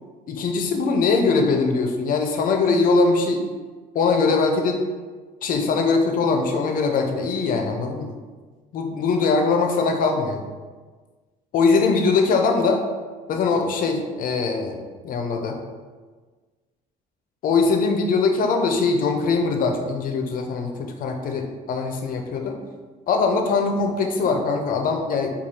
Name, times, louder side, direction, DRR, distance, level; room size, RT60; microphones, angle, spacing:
voice 1, 0.3-3.5 3.9-4.8 5.4-8.1 8.7-10.4 11.5-12.8 13.3-15.6 17.4-22.6 23.1-25.4, left 4 dB, 55° left, 4 dB, 0.6 m, -21 dB
4.7 x 2.4 x 2.8 m, 1.4 s
cardioid pair, 110°, 17 cm